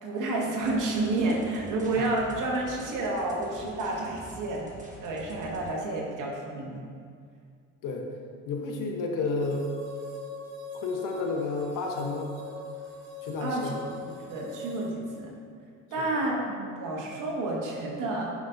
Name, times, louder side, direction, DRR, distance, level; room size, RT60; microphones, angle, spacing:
voice 1, 0.0-4.7 5.0-6.9 13.4-13.7 14.0-15.3 15.9-18.3, right 2 dB, 55° right, -2 dB, 1.8 m, -30 dB
sound 1, 0.6-5.7, right 2 dB, 20° right, 1.5 m, -46 dB
voice 2, 8.5-9.7 10.7-12.3 13.2-13.8 16.0-16.1, left 3 dB, 60° left, 1 dB, 1.2 m, -31 dB
sound 2, 9.4-14.9, left 2 dB, 75° right, 1.2 m, -41 dB
10.5 x 5.4 x 2.7 m, 2.2 s
hypercardioid pair, 70°, 36 cm